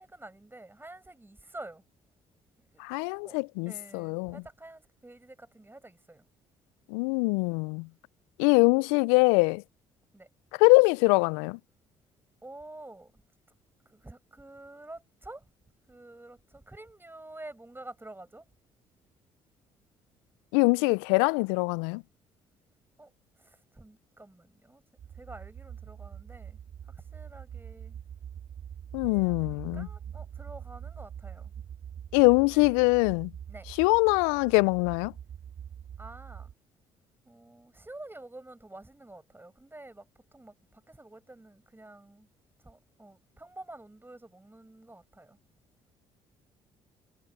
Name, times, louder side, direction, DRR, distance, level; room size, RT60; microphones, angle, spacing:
voice 1, 0.0-1.8 2.6-2.8 3.2-3.4 3.7-6.2 10.1-10.3 12.4-13.1 13.9-15.4 15.9-18.4 23.0-23.1 23.4-24.8 25.2-26.6 27.1-28.0 29.0-31.5 32.5-32.7 33.5-33.7 36.0-36.5 37.3-40.0 40.3-42.3 42.6-45.4, right 2 dB, 15° right, 7.2 m, -48 dB
voice 2, 2.8-4.4 6.9-7.9 8.4-9.6 10.6-11.6 20.5-22.0 28.9-29.9 32.1-33.3 33.8-35.1, left 31 dB, 80° left, 0.5 m, -23 dB
sound 1, 25.0-36.5, right 9 dB, 45° right, 0.8 m, -44 dB
hypercardioid pair, 50°, 16 cm